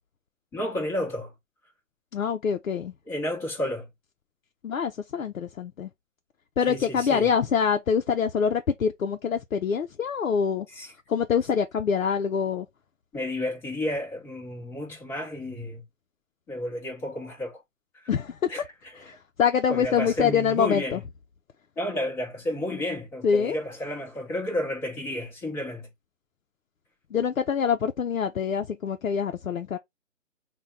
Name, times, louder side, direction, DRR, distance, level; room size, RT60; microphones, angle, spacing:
voice 1, 0.5-1.3 3.1-3.9 6.7-7.3 10.7-10.9 13.1-15.8 16.5-17.6 18.5-18.6 18.9-19.0 19.7-21.0 21.8-25.9, left 1 dB, 5° left, 0.8 m, -31 dB
voice 2, 2.1-2.9 4.6-5.9 6.6-10.7 11.1-12.7 18.1-18.5 19.0-21.0 23.2-23.6 27.1-29.8, left 7 dB, 90° left, 0.6 m, -25 dB
4.2 x 2.2 x 3.4 m
figure-of-eight pair, 140°, 39 cm